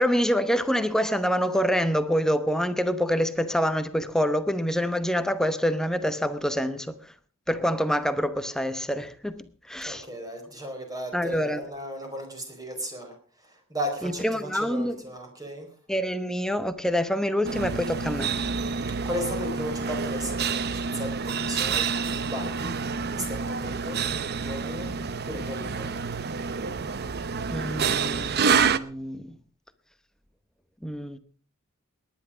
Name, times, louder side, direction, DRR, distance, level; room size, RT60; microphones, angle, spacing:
voice 1, 0.0-6.9 7.5-10.0 11.1-11.6 14.0-15.0 15.9-18.3 27.5-29.4 30.8-31.2, equal, 5° left, 0.9 m, -26 dB
voice 2, 9.8-13.1 13.4-15.7 19.0-21.9 22.2-22.7 23.1-24.0 24.4-24.9 25.2-26.0, equal, 20° right, 4.5 m, -35 dB
sound 1, 17.4-28.8, right 5 dB, 50° right, 0.8 m, -28 dB
19.5 x 10.5 x 5.1 m
head